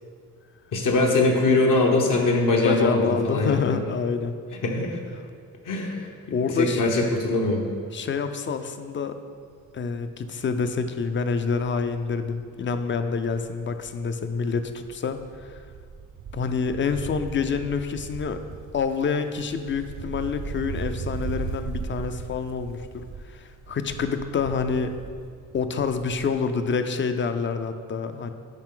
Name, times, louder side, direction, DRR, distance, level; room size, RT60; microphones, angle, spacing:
voice 1, 0.7-3.8 4.6-5.0 5.6-7.6, left 2 dB, 65° left, 0 dB, 1.0 m, -22 dB
voice 2, 2.6-4.4 6.3-6.9 7.9-9.2 9.7-15.6 16.3-18.4 18.7-25.0 25.5-28.3, left 5 dB, 35° left, 9 dB, 0.4 m, -27 dB
Wind, 9.5-9.8 10.1-10.2 10.5-14.1 14.4-26.5 26.8-26.9, right 5 dB, 60° right, 0.6 m, -38 dB
9.0 x 5.7 x 3.8 m, 2.2 s
wide cardioid pair, 150°, 34 cm